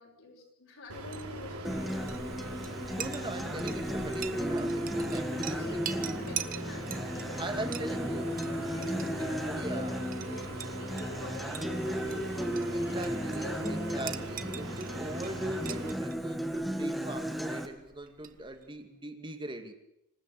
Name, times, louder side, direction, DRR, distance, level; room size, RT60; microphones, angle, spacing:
voice 1, 0.0-3.0 5.4-12.3 12.8-14.2, left 2 dB, 65° left, -2 dB, 6.5 m, -47 dB
sound 1, 0.9-15.9, right 1 dB, 80° right, 3.8 m, -41 dB
Chink clink, 1.0-18.8, right 9 dB, 40° right, 1.1 m, -45 dB
Acoustic guitar, 1.6-17.7, equal, ahead, 2.0 m, -35 dB
voice 2, 2.9-5.9 7.3-8.3 8.7-10.0 12.7-19.7, right 1 dB, 20° right, 6 dB, 2.3 m, -41 dB
26.0 x 15.5 x 8.5 m, 0.81 s
head